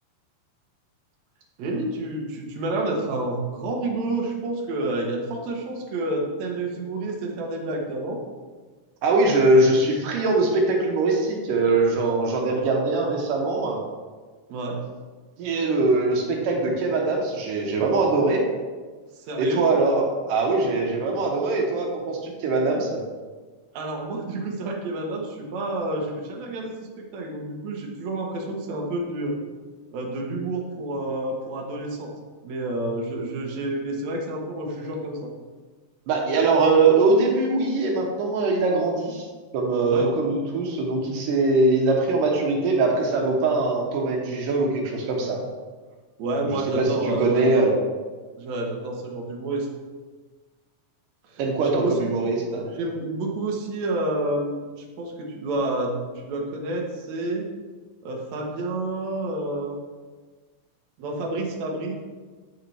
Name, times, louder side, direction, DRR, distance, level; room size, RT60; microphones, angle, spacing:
voice 1, 1.6-8.2 14.5-14.8 19.1-19.7 23.7-29.4 29.9-32.1 32.4-35.3 39.9-40.1 46.2-47.7 48.4-49.7 51.3-52.1 52.7-57.5 58.0-59.8 61.0-61.9, right 2 dB, 65° right, -1 dB, 2.2 m, -29 dB
voice 2, 9.0-13.8 15.4-18.4 19.4-23.0 36.1-39.3 39.5-45.4 46.5-47.7 51.4-52.7, right 3 dB, 80° right, 0 dB, 2.6 m, -22 dB
9.2 x 6.5 x 3.4 m, 1.4 s
omnidirectional pair, 3.8 m